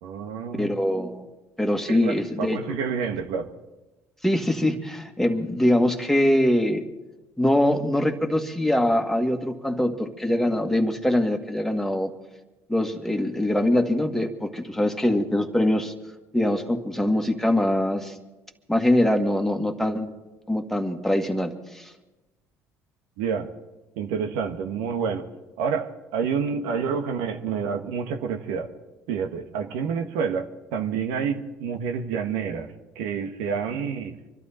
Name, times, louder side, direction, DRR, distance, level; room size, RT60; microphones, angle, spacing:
voice 1, 0.0-0.7 1.9-3.5 23.2-23.5 24.0-25.3 25.6-28.7 29.1-34.2, right 6 dB, 85° right, 6 dB, 1.3 m, -28 dB
voice 2, 0.5-1.3 1.6-2.8 4.2-6.8 7.4-12.1 12.7-15.9 16.3-18.1 18.7-20.1 20.5-21.9, left 1 dB, 5° left, 4 dB, 1.9 m, -23 dB
25.5 x 12.0 x 4.3 m, 1.1 s
supercardioid pair, 80°, 8 cm